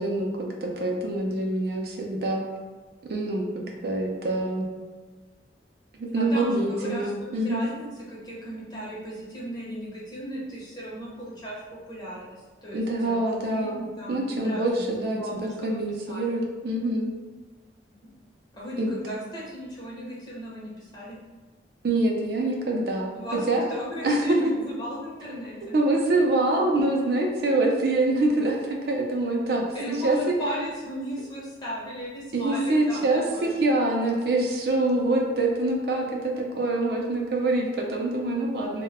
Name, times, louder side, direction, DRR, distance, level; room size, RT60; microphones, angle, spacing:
voice 1, 0.0-2.4 3.0-4.7 5.9-7.6 12.7-13.8 14.1-17.1 18.8-19.0 21.8-23.6 24.0-24.4 25.6-30.2 32.3-38.8, right 2 dB, 60° right, 0 dB, 0.4 m, -25 dB
voice 2, 6.2-15.8 16.1-16.4 18.5-21.2 23.1-25.7 29.7-33.1 33.3-33.5, equal, 25° left, -7 dB, 0.7 m, -36 dB
2.1 x 2.0 x 3.3 m, 1.3 s
head